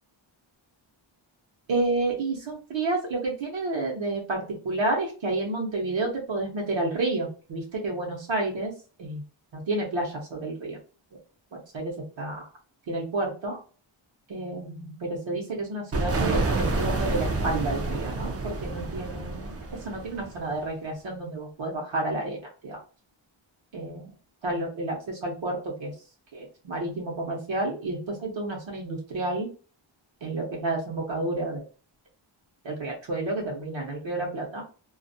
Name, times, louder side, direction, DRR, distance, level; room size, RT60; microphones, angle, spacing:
voice 1, 1.7-8.7 9.0-9.2 9.5-10.8 11.5-12.4 12.9-13.6 14.3-19.5 19.8-22.8 23.7-24.1 24.4-25.9 26.3-29.5 30.2-31.6 32.6-34.6, right 2 dB, 65° right, -1 dB, 0.8 m, -30 dB
sound 1, 15.9-20.6, right 2 dB, 35° right, 0.4 m, -28 dB
2.3 x 2.0 x 2.6 m, 0.37 s
wide cardioid pair, 170°, 49 cm